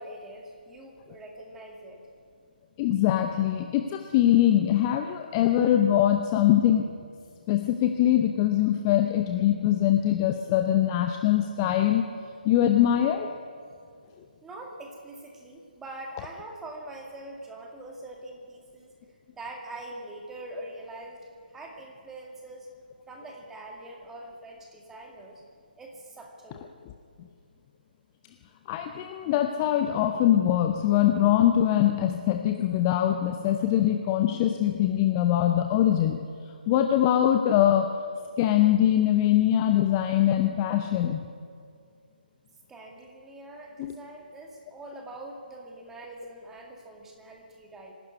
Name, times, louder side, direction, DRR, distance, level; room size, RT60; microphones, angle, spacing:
voice 1, 0.0-2.0 14.4-18.9 19.3-21.2 21.5-22.7 23.1-25.4 25.8-26.7 42.7-47.9, right 1 dB, 5° right, 0 dB, 2.2 m, -43 dB
voice 2, 2.8-6.9 7.5-12.1 12.4-13.4 27.2-27.3 28.7-36.3 36.7-38.0 38.4-41.2 43.8-43.9, left 11 dB, 20° left, 5 dB, 0.7 m, -23 dB
24.5 x 12.5 x 9.6 m, 2.3 s
figure-of-eight pair, 145°, 5 cm